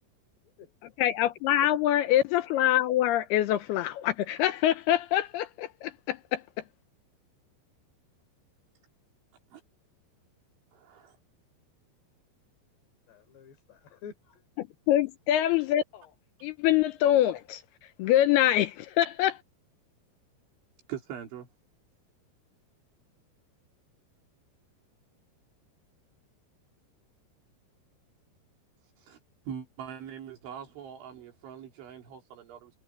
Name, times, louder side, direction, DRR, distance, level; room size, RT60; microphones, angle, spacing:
voice 1, 0.4-1.0 13.1-14.4, left 7 dB, 65° left, 5.7 m, -50 dB
voice 2, 1.0-6.4 14.6-16.0 16.4-17.6 18.0-19.4, left 12 dB, 80° left, 2.4 m, -25 dB
voice 3, 10.7-11.2 20.9-21.5 29.0-29.2 29.5-32.7, right 8 dB, 80° right, 5.9 m, -42 dB
omnidirectional pair, 5.3 m